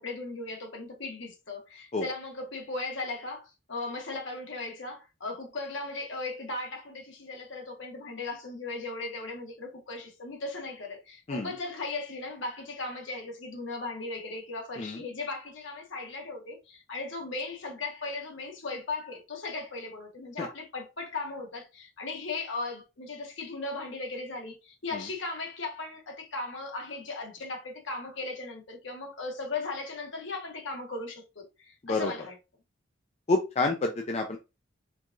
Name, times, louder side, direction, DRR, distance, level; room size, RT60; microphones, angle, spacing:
voice 1, 0.0-32.3, left 3 dB, 65° left, 1.1 m, -37 dB
voice 2, 33.3-34.4, left 3 dB, 30° left, 0.4 m, -28 dB
4.6 x 2.4 x 2.5 m
head